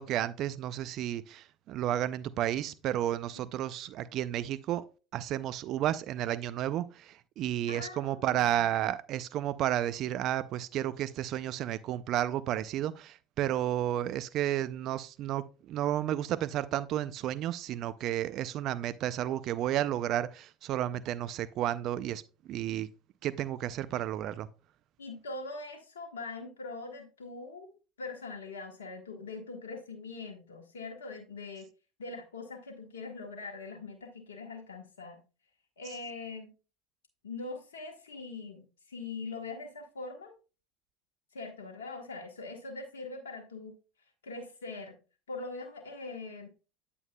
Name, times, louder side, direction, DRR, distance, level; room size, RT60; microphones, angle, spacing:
voice 1, 0.0-4.9 5.1-22.2 22.5-22.9 23.2-24.5, right 12 dB, 55° right, 0.5 m, -32 dB
voice 2, 7.7-8.7 25.0-31.7 32.0-35.2 35.8-36.5 37.2-40.3 41.3-43.7 44.2-45.0 45.3-46.5, left 3 dB, 90° left, 1.3 m, -42 dB
8.8 x 8.3 x 2.3 m
hypercardioid pair, 80°, 0 cm